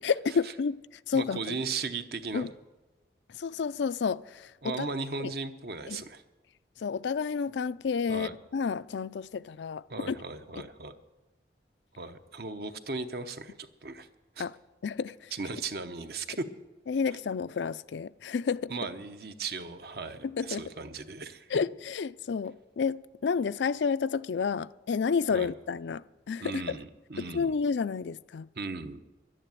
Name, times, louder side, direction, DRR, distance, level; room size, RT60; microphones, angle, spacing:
voice 1, 0.0-0.8 1.1-1.6 2.3-2.5 3.3-4.9 5.2-5.3 5.9-6.0 6.8-10.2 10.6-10.7 14.4-14.6 14.8-15.3 16.9-18.7 20.2-20.6 21.5-26.6 27.2-28.5, left 5 dB, 80° left, 0.4 m, -30 dB
voice 2, 1.1-2.5 4.6-6.2 8.1-8.3 9.9-11.0 12.0-14.1 14.4-14.5 15.3-16.5 18.7-21.5 25.3-25.5 26.4-27.6 28.6-29.0, right 4 dB, 60° right, 0.8 m, -37 dB
11.5 x 10.0 x 9.1 m
head